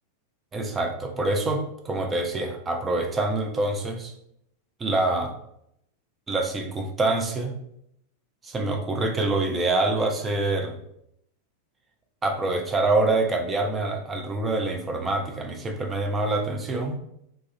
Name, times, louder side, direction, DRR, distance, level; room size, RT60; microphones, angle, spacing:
voice 1, 0.5-4.1 4.8-5.3 6.3-7.5 8.4-10.8 12.2-17.0, right 2 dB, 15° right, 3 dB, 0.4 m, -26 dB
2.3 x 2.1 x 2.6 m, 0.74 s
figure-of-eight pair, 90°, 0 cm